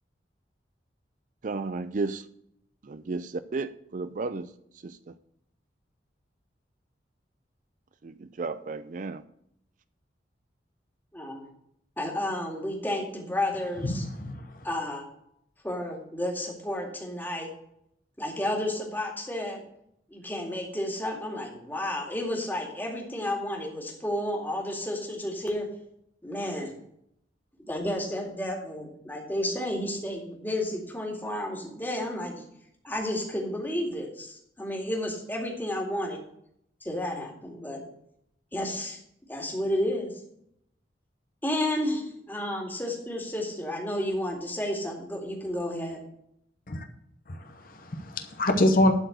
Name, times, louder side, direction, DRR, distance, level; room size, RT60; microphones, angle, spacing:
voice 1, 1.4-2.3 2.8-5.2 8.0-9.2, right 3 dB, 45° right, 0.4 m, -34 dB
voice 2, 12.0-14.1 14.6-15.1 15.6-17.5 18.2-19.6 20.1-25.7 26.2-26.7 27.6-32.4 32.8-36.2 36.8-37.8 38.5-40.1 41.4-46.0, left 1 dB, 10° left, 2.2 m, -31 dB
voice 3, 13.8-14.7 46.7-46.9 47.3-48.9, left 1 dB, 50° left, 0.9 m, -26 dB
11.5 x 4.5 x 7.9 m
head